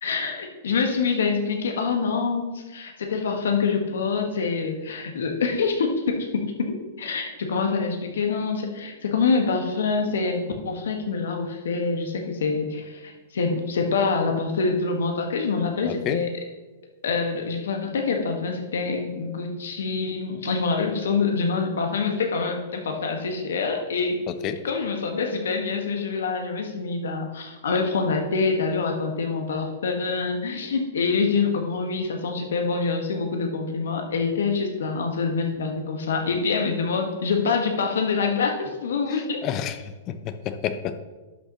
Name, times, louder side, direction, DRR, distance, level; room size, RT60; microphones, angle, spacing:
voice 1, 0.0-16.4 17.0-24.2 24.6-39.4, left 4 dB, 75° left, 3 dB, 1.5 m, -26 dB
voice 2, 15.9-16.2 24.3-24.6 39.4-39.8 40.1-41.0, left 9 dB, 35° left, 11 dB, 0.7 m, -29 dB
11.5 x 6.4 x 3.0 m, 1.2 s
hypercardioid pair, 120°, 0 cm